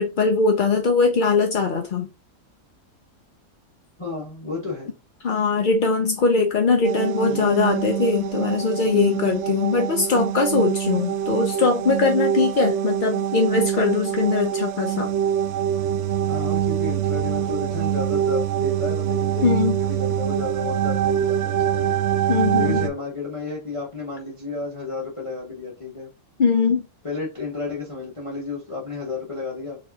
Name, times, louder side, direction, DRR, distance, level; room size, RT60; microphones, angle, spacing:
voice 1, 0.0-2.1 5.2-15.1 19.4-19.8 22.3-22.8 26.4-26.9, left 4 dB, 55° left, 0.5 m, -21 dB
voice 2, 4.0-4.9 7.3-7.7 8.8-9.2 16.3-19.5 19.8-26.1 27.0-29.8, left 4 dB, 25° left, 1.2 m, -32 dB
sound 1, 6.8-22.9, right 10 dB, 65° right, 0.8 m, -24 dB
4.6 x 3.1 x 2.7 m
omnidirectional pair, 1.5 m